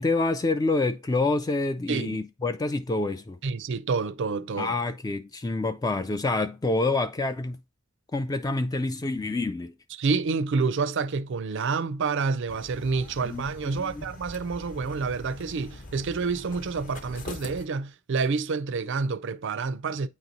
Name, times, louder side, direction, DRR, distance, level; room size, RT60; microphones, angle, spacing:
voice 1, 0.0-3.4 4.6-7.6 8.1-9.7 13.2-13.4 13.7-14.1, left 2 dB, 15° left, 0.3 m, -27 dB
voice 2, 1.9-2.2 3.4-4.7 10.0-20.1, right 4 dB, 60° right, 0.4 m, -28 dB
sound 1, 12.5-17.7, left 2 dB, 40° left, 0.8 m, -43 dB
8.7 x 3.0 x 4.0 m
head